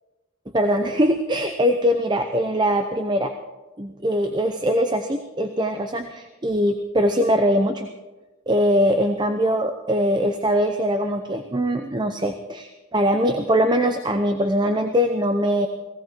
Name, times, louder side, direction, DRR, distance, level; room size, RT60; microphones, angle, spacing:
voice 1, 0.5-3.3 3.8-7.9 8.5-15.7, equal, 20° right, 7 dB, 0.7 m, -22 dB
18.5 x 16.5 x 4.5 m, 1.2 s
head